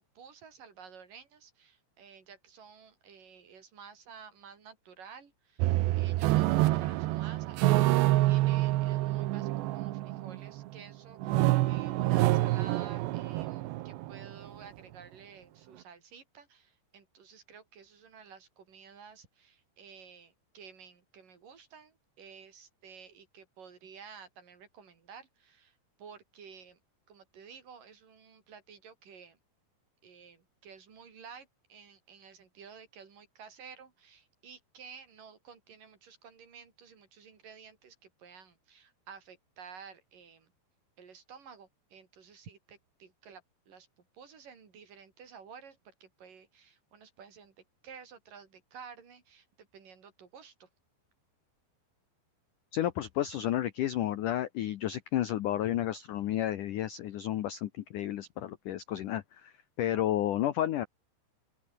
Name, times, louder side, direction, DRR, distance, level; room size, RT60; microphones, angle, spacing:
voice 1, 0.2-26.8 27.1-29.4 30.0-40.5 41.0-47.6 47.8-50.7, right 6 dB, 50° right, 5.7 m, -52 dB
sound 1, 5.6-10.8 11.2-14.3, right 17 dB, 75° right, 3.0 m, -27 dB
voice 2, 52.7-59.5 59.8-60.9, left 12 dB, 80° left, 1.8 m, -31 dB
open air
omnidirectional pair, 5.2 m